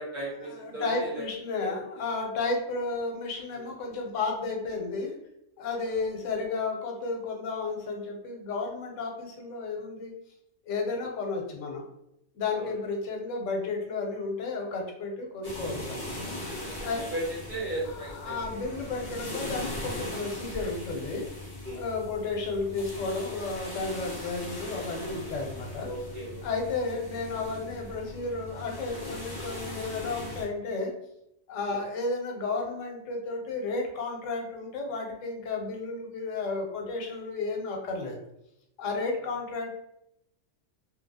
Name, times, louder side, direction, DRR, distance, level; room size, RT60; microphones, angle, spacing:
voice 1, 0.0-1.2 1.6-1.8 3.5-3.7 5.8-6.0 10.9-11.0 12.5-12.7 16.4-18.4 21.6-21.8 25.8-26.5 31.6-31.8 39.0-39.1, right 1 dB, 40° right, -5 dB, 0.9 m, -36 dB
voice 2, 0.7-5.1 5.6-10.1 10.7-11.9 12.3-16.4 16.8-17.1 18.1-21.3 21.7-25.9 26.4-30.9 31.5-38.2 38.8-39.8, left 3 dB, 90° left, 1 dB, 1.0 m, -32 dB
sound 1, 15.4-30.4, left 1 dB, 30° left, 0.4 m, -39 dB
2.7 x 2.3 x 2.7 m, 0.81 s
omnidirectional pair, 1.3 m